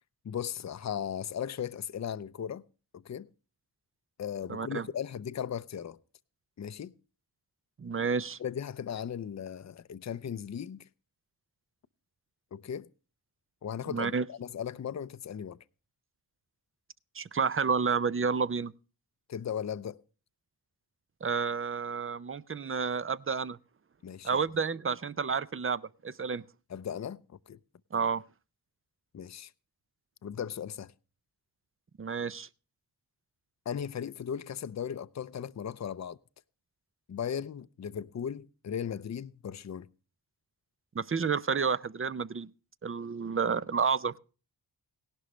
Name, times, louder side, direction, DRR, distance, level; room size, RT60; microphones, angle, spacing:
voice 1, 0.2-2.6 2.9-3.3 4.2-6.0 6.6-6.9 8.4-10.8 12.5-12.9 13.6-15.6 19.3-20.0 24.0-24.4 26.7-27.2 27.5-27.6 29.1-29.5 30.2-30.9 33.7-36.2 37.1-39.9, left 8 dB, 40° left, 0.6 m, -37 dB
voice 2, 4.5-4.9 7.8-8.4 13.9-14.3 17.2-18.7 21.2-23.6 24.2-26.4 27.9-28.2 32.0-32.5 40.9-42.5 42.8-44.2, right 5 dB, 30° right, 0.5 m, -30 dB
17.0 x 11.5 x 3.2 m
cardioid pair, 50°, 41 cm